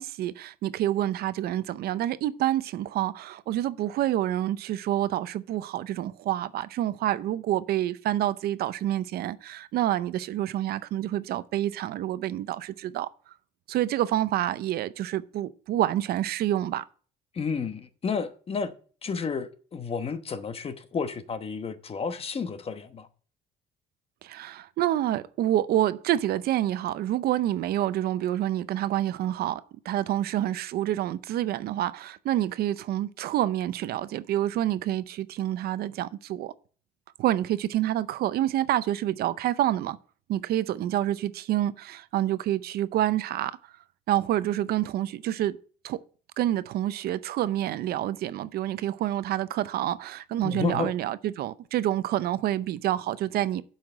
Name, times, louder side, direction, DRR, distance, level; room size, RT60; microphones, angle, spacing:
voice 1, 0.0-13.1 13.7-16.8 24.2-36.5 37.2-40.0 40.3-43.6 44.1-45.6 45.8-46.0 46.4-53.6, right 13 dB, 65° right, 0.6 m, -28 dB
voice 2, 17.3-18.7 19.0-23.1 50.4-50.9, left 5 dB, 35° left, 1.1 m, -31 dB
7.7 x 5.8 x 7.3 m
cardioid pair, 110°, 17 cm